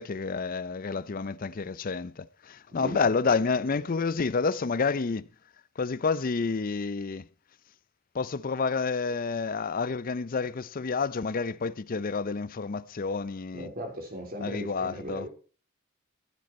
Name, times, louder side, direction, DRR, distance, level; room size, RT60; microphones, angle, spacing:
voice 1, 0.0-5.3 5.8-7.3 8.1-13.7 14.4-15.3, left 4 dB, 40° left, 0.5 m, -29 dB
voice 2, 2.8-3.7 13.5-15.3, equal, 40° right, 3.0 m, -38 dB
14.0 x 7.9 x 4.2 m
head